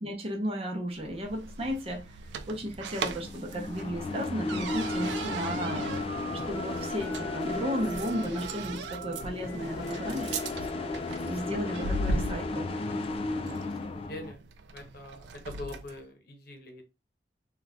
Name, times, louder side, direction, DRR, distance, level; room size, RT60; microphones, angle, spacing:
voice 1, 0.0-2.2 2.5-5.9 6.3-10.4 11.2-12.7 13.3-13.6, equal, 35° right, 0.7 m, -34 dB
sound 1, 1.0-16.0, right 3 dB, 80° right, 0.4 m, -39 dB
sound 2, 3.2-14.3, left 3 dB, 30° left, 0.3 m, -35 dB
Telephone, 4.7-11.5, right 5 dB, 5° right, 1.0 m, -43 dB
voice 2, 13.6-14.4 14.7-16.8, left 1 dB, 60° left, 0.8 m, -44 dB
3.8 x 2.3 x 2.3 m
head